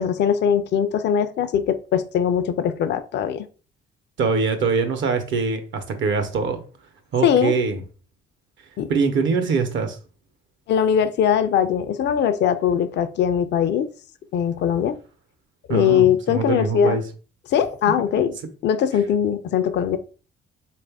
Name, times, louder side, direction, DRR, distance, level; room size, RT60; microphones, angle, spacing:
voice 1, 0.0-3.5 7.2-7.6 8.8-8.9 10.7-13.9 14.3-15.0 15.7-17.0 17.5-18.3 18.6-20.0, left 8 dB, 60° left, 0.4 m, -21 dB
voice 2, 4.2-6.6 7.1-7.8 8.9-10.0 15.7-17.0, right 4 dB, 70° right, 0.8 m, -23 dB
3.8 x 2.5 x 3.4 m
cardioid pair, 90°, 20 cm